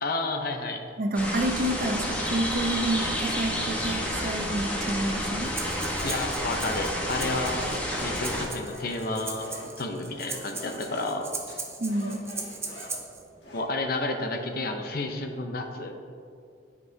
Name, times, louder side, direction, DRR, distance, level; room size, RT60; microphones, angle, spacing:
voice 1, 0.0-0.8 6.0-7.7 8.0-11.3 13.5-15.9, left 2 dB, 55° left, 4 dB, 0.7 m, -31 dB
voice 2, 1.0-5.5 11.8-12.2, right 1 dB, 50° right, 4 dB, 0.7 m, -29 dB
sound 1, 1.1-8.4, equal, 10° left, 1.0 m, -30 dB
sound 2, 2.7-13.6, left 1 dB, 75° left, 1.7 m, -45 dB
Breathing, 5.4-13.2, right 3 dB, 15° right, 0.6 m, -39 dB
10.5 x 5.4 x 2.7 m, 2.4 s
head